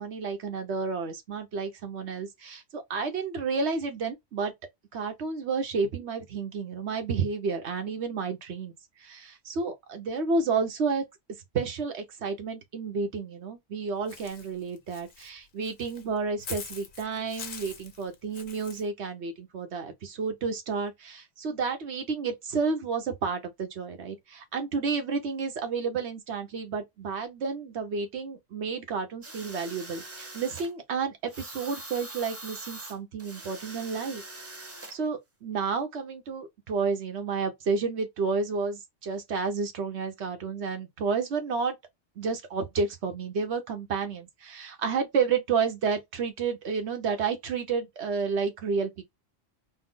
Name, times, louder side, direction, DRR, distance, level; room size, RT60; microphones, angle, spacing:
voice 1, 0.0-4.5 4.9-8.7 9.0-11.0 11.5-34.2 34.9-41.7 42.2-49.0, right 5 dB, 80° right, 1.2 m, -31 dB
Walk footsteps / Bird, 14.1-18.8, left 6 dB, 55° left, 0.9 m, -44 dB
sound 1, 29.2-30.7 31.3-35.0, right 2 dB, 20° right, 0.4 m, -43 dB
4.3 x 2.0 x 3.7 m
omnidirectional pair, 1.1 m